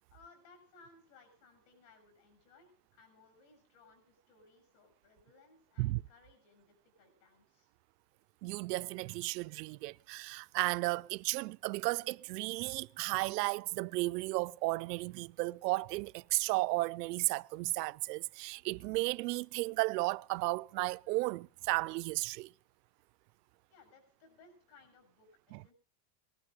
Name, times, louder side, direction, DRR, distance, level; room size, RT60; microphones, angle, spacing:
voice 1, 0.1-7.7 23.7-25.7, left 4 dB, 55° left, 7.2 m, -62 dB
voice 2, 8.4-22.5 25.5-25.6, right 23 dB, 80° right, 0.6 m, -34 dB
19.5 x 12.0 x 5.1 m
supercardioid pair, 175°, 48 cm